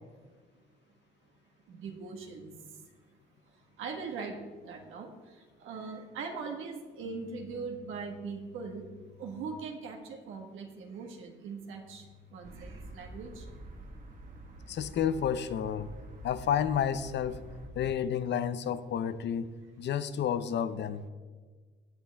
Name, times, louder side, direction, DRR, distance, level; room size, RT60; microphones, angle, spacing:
voice 1, 1.7-2.5 3.8-4.4 4.6-5.1 5.6-8.9 9.2-12.0 12.3-13.4, right 4 dB, 85° right, 2 dB, 1.5 m, -40 dB
sound 1, 12.4-17.7, right 2 dB, 45° right, 1.5 m, -47 dB
voice 2, 14.7-15.9 16.2-17.4 17.8-19.5 19.8-21.0, left 8 dB, 60° left, 13 dB, 0.7 m, -30 dB
16.0 x 8.7 x 3.5 m, 1.4 s
cardioid pair, 90°, 20 cm